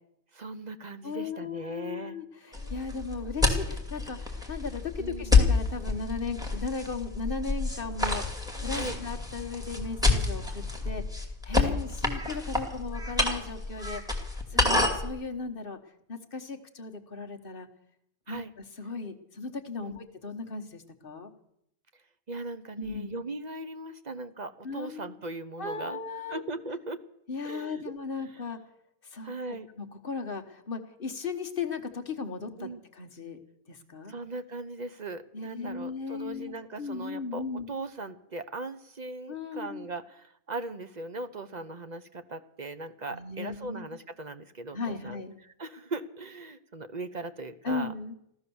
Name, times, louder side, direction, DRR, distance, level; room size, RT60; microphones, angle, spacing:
voice 1, 0.3-2.2 5.0-5.4 8.7-9.0 11.5-11.8 14.5-14.9 18.3-18.5 19.8-20.0 22.3-26.0 26.3-27.0 27.4-27.9 29.2-29.7 32.6-32.8 34.1-45.2 45.6-47.9, right 2 dB, 40° right, 11 dB, 0.8 m, -39 dB
voice 2, 1.0-15.8 16.1-17.7 18.3-18.4 18.8-21.3 22.8-23.1 24.6-25.1 25.6-26.4 27.3-28.6 29.0-29.3 29.8-33.4 33.7-34.1 35.3-37.7 39.3-39.9 43.1-43.8 44.7-45.3 47.6-48.1, left 4 dB, 40° left, 7 dB, 1.4 m, -36 dB
sound 1, 2.5-15.1, left 3 dB, 5° right, 2.4 m, -28 dB
15.5 x 13.5 x 7.0 m, 0.76 s
omnidirectional pair, 1.5 m